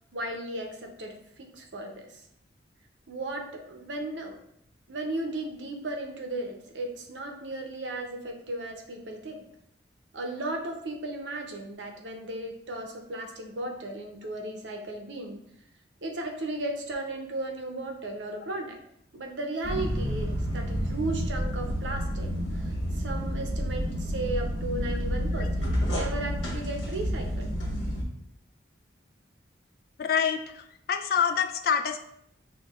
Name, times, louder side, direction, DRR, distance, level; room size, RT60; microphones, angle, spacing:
voice 1, 0.1-2.2 3.1-4.4 4.9-9.4 10.1-15.4 16.0-18.8 19.1-22.3 22.6-22.7 22.9-27.5, right 2 dB, 75° right, 3 dB, 0.7 m, -35 dB
sound 1, 19.6-28.0, equal, 75° left, 1.3 m, -30 dB
voice 2, 30.0-32.0, left 7 dB, 50° left, 6 dB, 0.3 m, -27 dB
6.6 x 2.3 x 2.4 m, 0.73 s
head